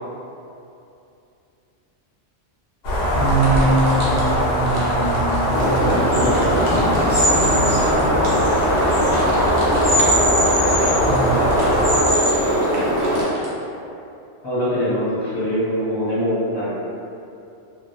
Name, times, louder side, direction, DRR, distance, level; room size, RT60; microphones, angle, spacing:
sound 1, 2.8-12.0, equal, 60° left, 0.9 m, -21 dB
voice 1, 3.1-8.1 11.0-11.6, right 2 dB, 45° left, -14 dB, 0.4 m, -24 dB
sound 2, 3.3-13.6, right 1 dB, 50° right, 0.5 m, -39 dB
sound 3, 5.5-13.2, equal, ahead, 1.0 m, -20 dB
voice 2, 14.4-16.7, equal, 25° left, -13 dB, 0.9 m, -23 dB
2.1 x 2.1 x 2.9 m, 2.7 s
omnidirectional pair, 1.3 m